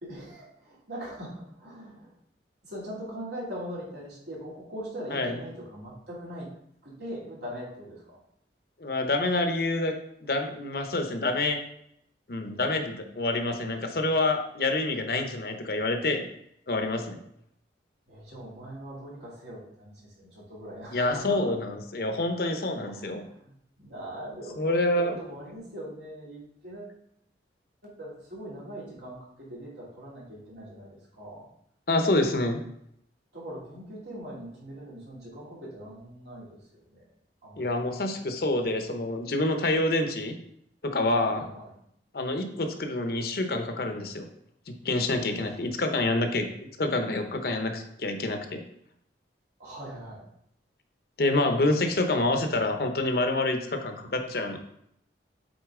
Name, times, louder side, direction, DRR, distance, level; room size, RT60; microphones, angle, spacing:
voice 1, 0.0-2.1 2.6-6.5 6.8-8.2 18.1-21.4 22.7-23.5 23.8-27.0 27.8-31.4 33.3-37.1 37.4-37.7 41.3-41.7 45.1-45.6 49.6-50.2 54.0-54.1, equal, 70° right, -6 dB, 2.7 m, -41 dB
voice 2, 8.8-9.9 10.2-11.6 12.3-16.3 16.7-17.2 20.9-23.2 24.6-25.2 31.9-32.6 37.6-40.3 40.8-41.4 42.1-44.3 44.7-46.5 46.8-48.6 51.2-54.6, left 2 dB, 60° left, 5 dB, 0.8 m, -27 dB
8.1 x 3.9 x 3.7 m, 0.72 s
head